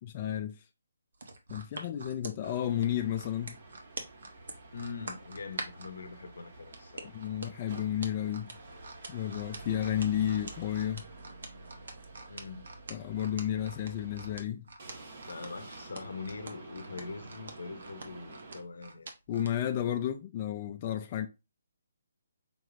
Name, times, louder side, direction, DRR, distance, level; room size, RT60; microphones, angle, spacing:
voice 1, 0.0-0.6 1.5-3.6 7.1-8.5 9.1-11.1 12.9-14.7 19.3-21.3, left 10 dB, 35° left, 0.3 m, -32 dB
sound 1, 1.1-5.9 6.7-19.5 20.0-20.1, right 3 dB, 70° right, 0.9 m, -44 dB
sound 2, 2.4-14.4 14.8-18.6, right 3 dB, 55° right, 1.3 m, -50 dB
voice 2, 4.7-7.1 12.3-12.6 15.3-19.1, left 4 dB, 75° left, 0.6 m, -43 dB
5.2 x 3.0 x 2.4 m
hypercardioid pair, 150°, 0 cm